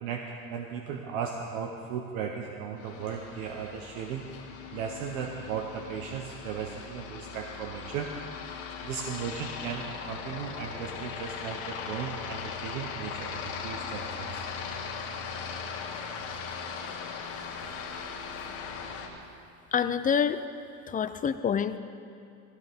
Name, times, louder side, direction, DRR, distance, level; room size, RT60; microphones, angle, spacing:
voice 1, 0.0-14.5 15.9-16.3, right 7 dB, 85° right, 2 dB, 1.1 m, -37 dB
Aircraft, 2.8-19.1, left 6 dB, 75° left, 2.4 m, -39 dB
voice 2, 19.7-20.4 20.9-21.8, left 7 dB, 20° left, 11 dB, 0.5 m, -26 dB
16.0 x 16.0 x 3.7 m, 2.5 s
supercardioid pair, 120°, 40 cm